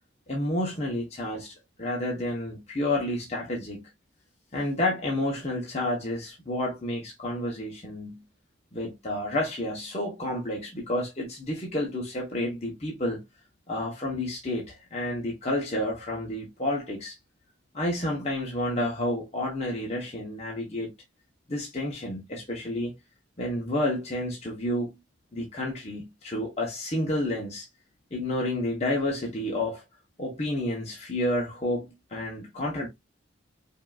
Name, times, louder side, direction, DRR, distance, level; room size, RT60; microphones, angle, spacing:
voice 1, 0.3-3.9 4.5-8.2 8.7-13.2 13.7-17.2 17.7-20.9 21.5-22.9 23.4-24.9 25.3-27.7 28.1-29.8 30.2-32.9, left 1 dB, 35° left, 1.0 m, -30 dB
5.3 x 2.6 x 2.4 m
head